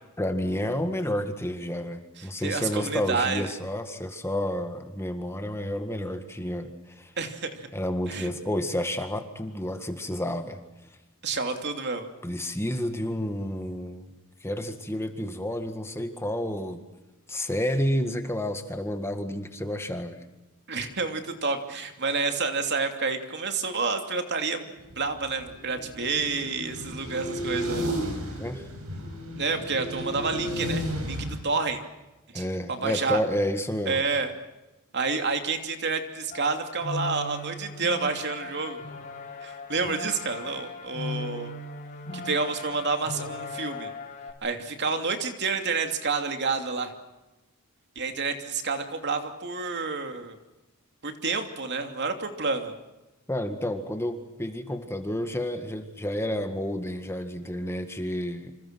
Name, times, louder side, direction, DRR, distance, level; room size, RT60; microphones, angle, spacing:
voice 1, 0.2-7.1 7.7-10.6 12.2-14.1 14.4-16.8 17.3-20.2 28.4-28.6 32.3-34.0 53.3-58.5, left 1 dB, 10° left, 6 dB, 1.8 m, -30 dB
voice 2, 2.2-3.5 7.2-7.7 8.1-8.3 11.2-12.1 20.7-27.9 29.4-31.8 32.3-33.2 33.9-34.3 34.9-38.8 39.4-41.5 42.1-43.9 44.4-46.9 47.9-50.4 51.0-52.7, right 4 dB, 50° right, 5 dB, 2.8 m, -29 dB
sound 1, 24.8-31.4, equal, 75° right, 7.2 m, -33 dB
sound 2, 36.3-44.3, left 3 dB, 35° left, 4.2 m, -38 dB
28.0 x 27.0 x 6.2 m, 1.0 s
head